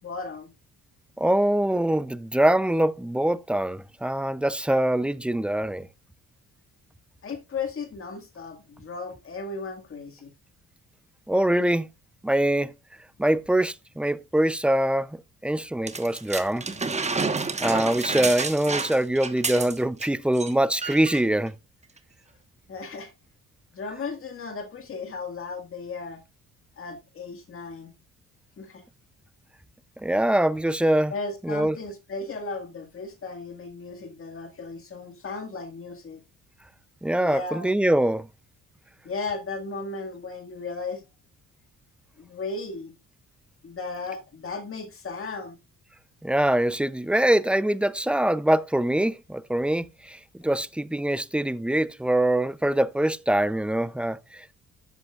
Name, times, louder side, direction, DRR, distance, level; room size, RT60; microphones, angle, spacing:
voice 1, 0.0-0.5 7.2-10.3 22.7-23.1 23.7-26.2 26.8-27.9 28.6-28.8 31.1-36.2 37.2-37.7 39.0-41.0 42.2-42.9 43.6-45.6, left 4 dB, 45° left, 1.9 m, -35 dB
voice 2, 1.2-5.9 11.3-11.9 12.2-12.7 13.2-15.2 15.4-16.6 17.6-21.5 30.0-31.1 31.4-31.8 37.0-38.3 46.2-54.5, right 1 dB, 5° right, 0.5 m, -23 dB
sound 1, 15.9-20.1 20.3-20.5 20.8-21.2 22.0-22.1, right 4 dB, 20° right, 1.2 m, -29 dB
13.0 x 7.9 x 2.4 m
cardioid pair, 90°, 30 cm